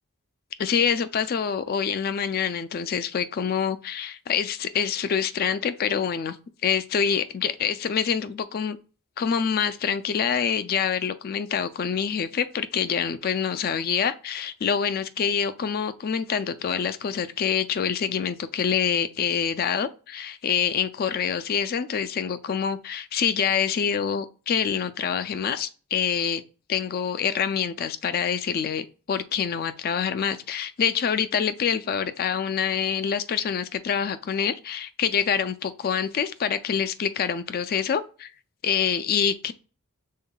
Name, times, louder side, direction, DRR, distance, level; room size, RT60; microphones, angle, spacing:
voice 1, 0.6-6.4 6.6-8.8 9.2-26.4 26.7-38.3 38.6-39.5, left 7 dB, 45° left, 0.3 m, -26 dB
5.5 x 3.6 x 2.2 m
head